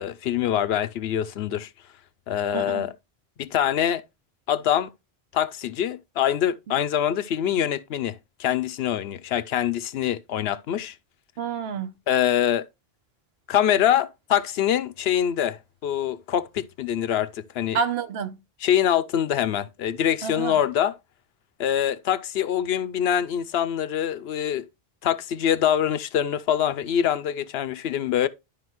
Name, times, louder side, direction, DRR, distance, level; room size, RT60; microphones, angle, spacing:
voice 1, 0.0-1.7 2.3-2.9 3.4-4.0 4.5-4.9 5.3-10.9 12.1-12.6 13.5-17.8 18.6-20.9 21.6-24.7 25.0-28.3, left 10 dB, 80° left, 0.8 m, -24 dB
voice 2, 2.5-2.9 6.7-6.8 11.4-11.9 17.7-18.4 20.2-20.6, right 6 dB, 75° right, 1.0 m, -29 dB
11.5 x 5.1 x 3.0 m
omnidirectional pair, 1.0 m